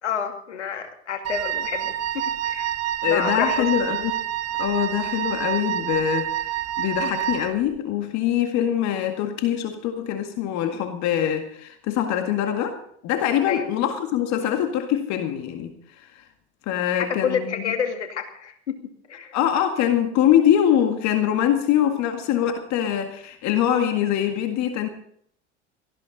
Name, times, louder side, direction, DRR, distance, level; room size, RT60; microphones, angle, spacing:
voice 1, 0.0-2.7 3.0-3.7 13.4-13.6 16.9-18.8 19.1-19.3, left 7 dB, 85° left, 6 dB, 2.4 m, -29 dB
Wind instrument woodwind instrument, 1.3-7.6, right 11 dB, 45° right, 1.5 m, -28 dB
voice 2, 3.0-4.1 4.6-16.2 16.7-17.7 19.3-24.9, left 10 dB, 55° left, 6 dB, 1.9 m, -23 dB
18.5 x 14.5 x 4.1 m, 0.66 s
hypercardioid pair, 75°, 34 cm